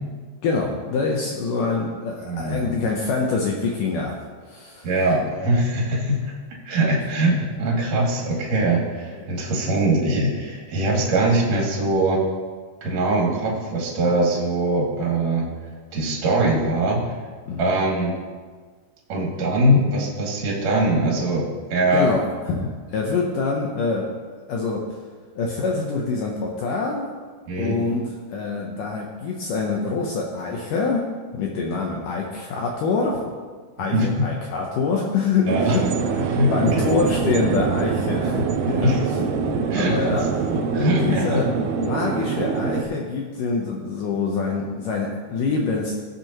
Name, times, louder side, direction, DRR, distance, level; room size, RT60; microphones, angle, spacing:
voice 1, 0.4-4.2 4.4-4.9 9.2-9.3 17.5-17.8 21.9-24.1 24.5-24.9 25.4-27.1 27.6-33.4 33.8-39.1 39.5-45.9, left 4 dB, 75° left, -1 dB, 2.0 m, -25 dB
voice 2, 2.3-2.7 4.8-6.3 6.7-12.2 12.8-15.4 15.9-17.0 17.6-18.1 19.1-21.4 21.7-22.1 27.5-27.7 33.9-34.2 35.5-35.8 36.3-36.9 38.8-39.0 39.7-40.2 40.5-41.4, right 1 dB, 45° right, -3 dB, 3.0 m, -22 dB
sound 1, 35.5-42.8, right 6 dB, 80° right, 2.5 m, -24 dB
17.0 x 7.6 x 3.0 m, 1.5 s
omnidirectional pair, 4.7 m